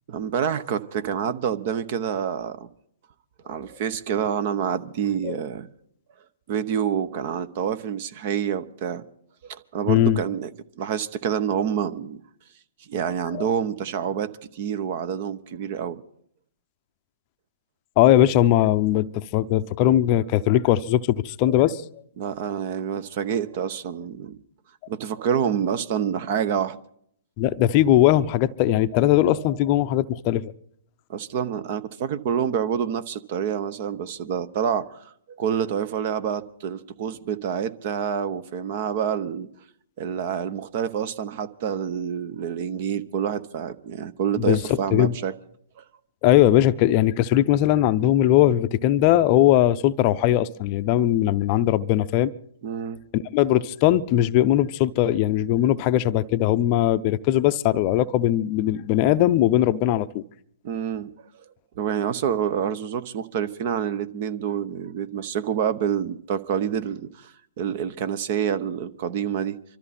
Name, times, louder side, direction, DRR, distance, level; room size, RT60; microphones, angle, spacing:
voice 1, 0.1-2.7 3.5-5.7 6.5-9.0 9.4-10.5 10.8-12.2 12.9-16.0 22.2-24.4 24.9-26.8 31.1-39.5 40.0-45.3 52.6-53.0 60.6-61.1 61.8-69.6, right 8 dB, 45° right, 0.9 m, -27 dB
voice 2, 9.9-10.2 13.3-13.5 18.0-21.8 27.4-30.4 44.4-44.6 44.9-45.1 46.2-52.3 53.1-60.2, left 13 dB, 35° left, 0.6 m, -20 dB
24.5 x 13.5 x 4.3 m
hypercardioid pair, 130°, 0 cm